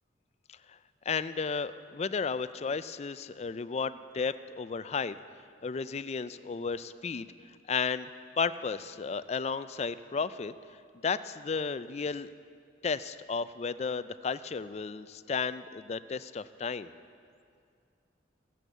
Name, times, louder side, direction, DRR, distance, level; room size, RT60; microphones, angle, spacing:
voice 1, 1.1-5.2 5.6-7.3 7.7-8.1 8.4-10.5 11.0-12.3 12.8-16.9, left 5 dB, 35° left, 14 dB, 0.4 m, -33 dB
15.0 x 8.4 x 7.8 m, 2.3 s
head